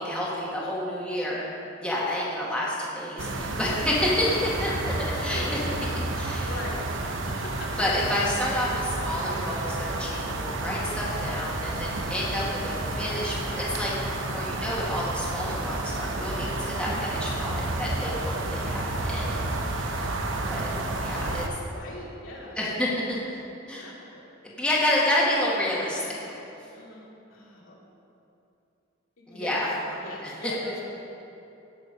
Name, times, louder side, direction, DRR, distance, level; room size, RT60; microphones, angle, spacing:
voice 1, 0.0-1.5 1.8-5.6 6.1-6.5 7.8-13.9 14.3-20.1 20.4-20.7 21.0-21.5 22.6-23.3 23.7-23.9 24.4-26.4 29.3-29.7 30.2-30.3, left 1 dB, 5° left, -6 dB, 1.9 m, -29 dB
sound 1, 3.2-21.5, right 2 dB, 70° right, 0.9 m, -31 dB
voice 2, 5.3-5.8 6.4-7.8 9.2-9.7 16.6-17.0 21.7-22.6 23.8-24.3 25.9-26.4 26.7-27.8 29.2-29.6 30.0-30.8, left 1 dB, 80° left, -5 dB, 2.7 m, -40 dB
17.0 x 6.6 x 5.2 m, 2.8 s
head